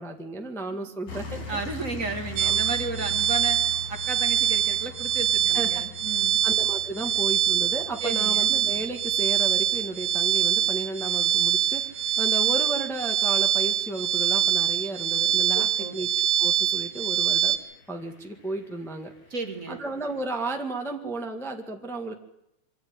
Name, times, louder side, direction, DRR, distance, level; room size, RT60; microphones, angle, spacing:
voice 1, 0.0-1.4 2.4-2.6 5.5-5.8 6.1-15.7 15.9-17.6 17.9-19.1 19.7-22.1, right 2 dB, 5° left, 3 dB, 0.5 m, -34 dB
sound 1, 1.1-20.2, left 4 dB, 55° left, 4.5 m, -45 dB
voice 2, 1.5-3.6 3.9-6.4 8.0-8.5 15.5-16.0 19.3-19.8, right 3 dB, 30° right, 5 dB, 1.8 m, -33 dB
sound 2, 2.4-17.6, right 10 dB, 80° right, 2.6 m, -24 dB
24.5 x 13.5 x 9.6 m, 0.84 s
omnidirectional pair, 3.5 m